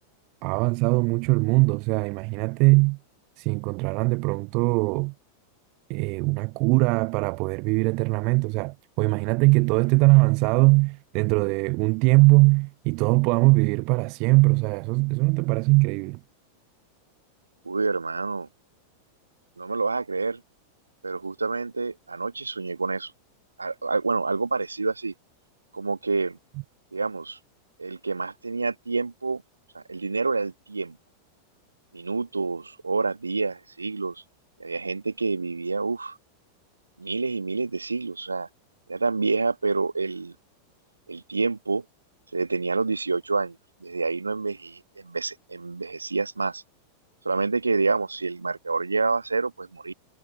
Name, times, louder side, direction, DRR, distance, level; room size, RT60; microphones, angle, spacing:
voice 1, 0.4-3.0 3.4-5.1 5.9-16.2, right 30 dB, 45° right, 0.3 m, -21 dB
voice 2, 17.6-18.5 19.6-20.4 21.0-23.1 23.6-25.1 25.7-26.4 26.9-27.4 27.8-29.4 29.7-31.0 31.9-34.2 34.6-36.2 37.0-38.5 38.9-40.3 41.1-41.8 42.3-43.6 43.8-46.6 47.2-49.9, right 4 dB, 80° right, 1.5 m, -28 dB
figure-of-eight pair, 90°, 0 cm